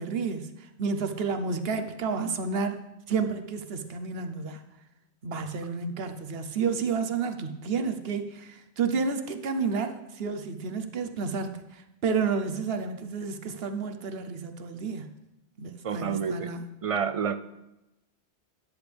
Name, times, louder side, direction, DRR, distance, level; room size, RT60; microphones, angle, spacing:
voice 1, 0.0-2.8 3.1-4.6 5.2-15.1 15.6-16.6, right 5 dB, 65° right, 8 dB, 1.1 m, -31 dB
voice 2, 15.8-16.5 16.8-17.4, right 7 dB, 45° right, 12 dB, 0.4 m, -28 dB
13.0 x 10.0 x 3.4 m, 0.94 s
omnidirectional pair, 1.1 m